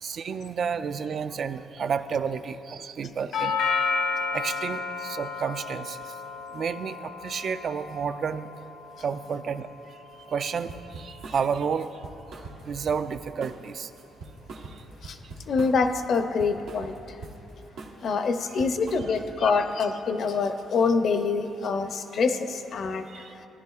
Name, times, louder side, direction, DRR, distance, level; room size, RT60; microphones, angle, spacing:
voice 1, 0.0-3.6 4.3-6.2 6.5-8.5 9.0-10.0 10.3-12.0 12.6-13.9 14.5-14.8 23.1-23.3, right 6 dB, 55° right, 10 dB, 0.3 m, -31 dB
Doorbell, 3.3-11.4, left 5 dB, 85° left, 1.1 m, -33 dB
sound 1, 10.7-11.4 11.8-13.1 13.4-13.7 14.0-15.9 16.1-17.4 17.8-18.0 18.3-19.4, right 3 dB, 85° right, 1.1 m, -42 dB
voice 2, 15.5-16.9 18.0-23.1, left 4 dB, 60° left, 8 dB, 0.5 m, -25 dB
15.5 x 10.5 x 2.4 m, 2.9 s
cardioid pair, 90°, 0 cm